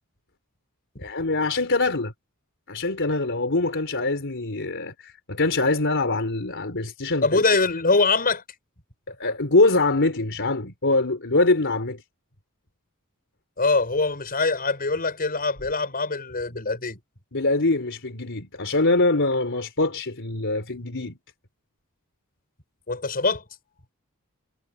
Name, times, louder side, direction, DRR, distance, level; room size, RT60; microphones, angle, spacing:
voice 1, 1.0-2.1 2.7-7.4 9.1-12.0 17.3-21.2, left 2 dB, 60° left, 3.9 m, -23 dB
voice 2, 7.2-8.4 13.6-17.0 22.9-23.4, left 3 dB, 45° left, 5.6 m, -23 dB
head